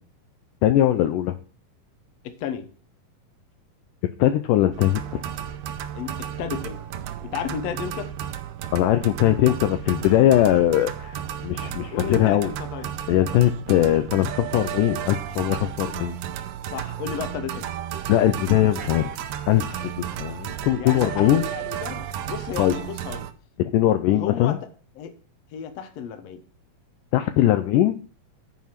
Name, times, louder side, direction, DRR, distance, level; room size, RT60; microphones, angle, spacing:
voice 1, 0.6-1.4 4.2-5.2 8.7-12.5 13.1-16.2 18.1-19.1 19.5-21.4 22.6-22.8 23.6-24.6 27.1-27.9, left 13 dB, 85° left, 9 dB, 1.8 m, -20 dB
voice 2, 2.2-2.7 6.0-6.8 7.2-8.1 11.9-12.9 16.7-17.7 20.8-23.3 24.1-24.6 25.0-25.1 25.5-26.4, left 8 dB, 70° left, 9 dB, 1.6 m, -33 dB
sound 1, 4.7-23.3, right 10 dB, 75° right, 2.0 m, -33 dB
10.5 x 4.8 x 5.8 m, 0.39 s
omnidirectional pair, 4.4 m